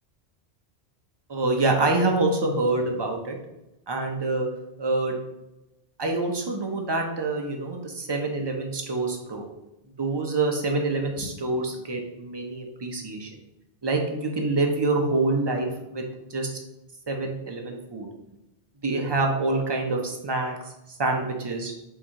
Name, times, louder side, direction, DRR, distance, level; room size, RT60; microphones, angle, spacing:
voice 1, 1.3-3.4 3.9-4.5 4.8-5.2 6.0-9.5 10.0-13.3 13.8-16.0 16.3-16.5 17.1-18.1 18.8-20.6 21.0-21.7, right 2 dB, 30° right, 2 dB, 0.5 m, -26 dB
4.6 x 3.1 x 3.6 m, 0.94 s
omnidirectional pair, 1.1 m